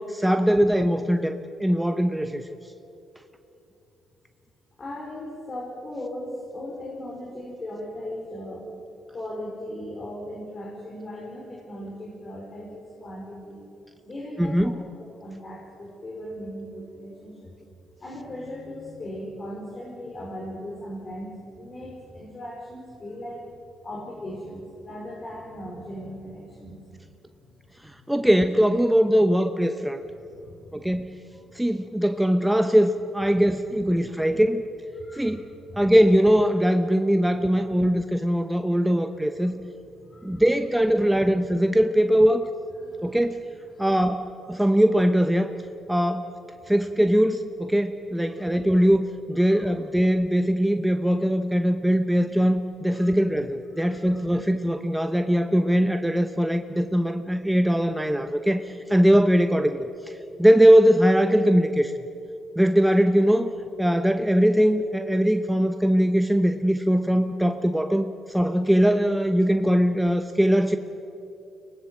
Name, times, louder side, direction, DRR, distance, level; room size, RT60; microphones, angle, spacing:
voice 1, 0.0-2.5 14.4-14.8 27.8-30.0 30.7-31.2 31.5-34.6 35.1-35.5 35.7-39.6 40.2-42.5 43.0-43.4 43.8-45.5 45.9-46.3 46.7-61.9 62.6-63.5 63.8-70.8, equal, 5° right, 7 dB, 1.0 m, -21 dB
voice 2, 4.8-8.7 9.1-13.6 14.0-14.7 15.2-17.5 18.0-27.0 30.2-30.8 31.3-31.6 33.9-34.0 34.9-35.4 35.7-35.8 39.4-39.5 39.9-40.4 42.8-43.2 43.7-43.8 48.3-48.4 49.4-49.7 52.9-53.1 53.7-54.0, left 1 dB, 40° left, -2 dB, 5.0 m, -38 dB
23.0 x 19.0 x 7.9 m, 2.8 s
cardioid pair, 70°, 0 cm